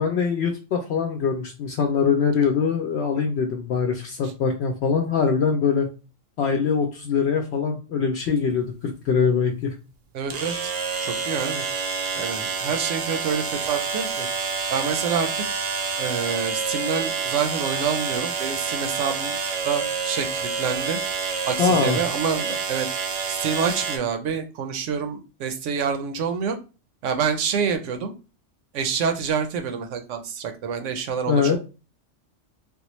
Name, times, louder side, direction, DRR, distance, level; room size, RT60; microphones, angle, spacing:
voice 1, 0.0-5.9 6.4-9.7 21.6-22.0 31.3-31.6, left 6 dB, 65° left, 3 dB, 0.8 m, -23 dB
sound 1, 8.3-8.4 10.3-24.0, right 5 dB, 60° right, 0.8 m, -28 dB
voice 2, 10.1-10.7 11.0-11.6 12.2-14.3 14.7-15.4 16.0-19.4 19.6-21.0 21.5-22.9 23.3-26.6 27.0-28.1 28.7-31.6, right 6 dB, 85° right, 7 dB, 0.9 m, -27 dB
3.5 x 2.3 x 3.0 m, 0.33 s
omnidirectional pair, 1.3 m